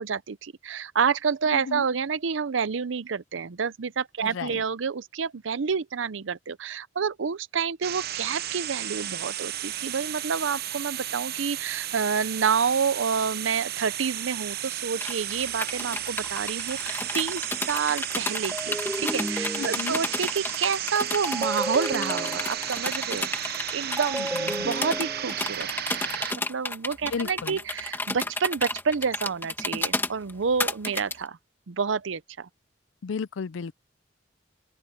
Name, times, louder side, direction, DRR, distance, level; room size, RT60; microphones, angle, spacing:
voice 1, 0.0-25.7 26.3-31.4 31.7-32.5, right 6 dB, 75° right, 0.6 m, -29 dB
voice 2, 1.5-1.9 4.2-4.6 19.6-20.0 24.2-24.7 27.1-27.6 33.0-33.7, left 5 dB, 80° left, 0.4 m, -34 dB
sound 1, 7.8-26.3, right 11 dB, 55° right, 0.9 m, -33 dB
sound 2, 15.0-31.1, left 2 dB, 10° left, 2.1 m, -32 dB
sound 3, 18.5-20.2 21.2-22.9 24.0-25.7, right 1 dB, 5° right, 0.9 m, -33 dB
open air
head